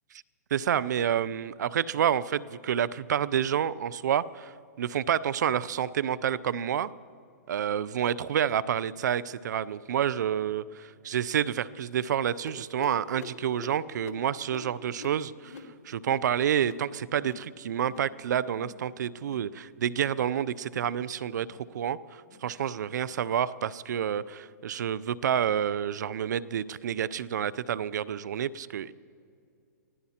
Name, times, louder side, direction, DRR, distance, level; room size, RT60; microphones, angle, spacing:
voice 1, 0.5-6.9 7.5-28.9, right 9 dB, 75° right, 20 dB, 0.4 m, -29 dB
sound 1, 12.5-17.5 17.8-18.2 18.4-18.8 19.1-19.5 19.9-20.2 20.6-21.0 21.4-21.7 22.2-22.5 23.0-23.3 23.9-24.1 24.8-24.9 25.6-25.7, left 6 dB, 55° left, 1.3 m, -47 dB
24.5 x 16.0 x 2.9 m, 2.4 s
hypercardioid pair, 140°, 10 cm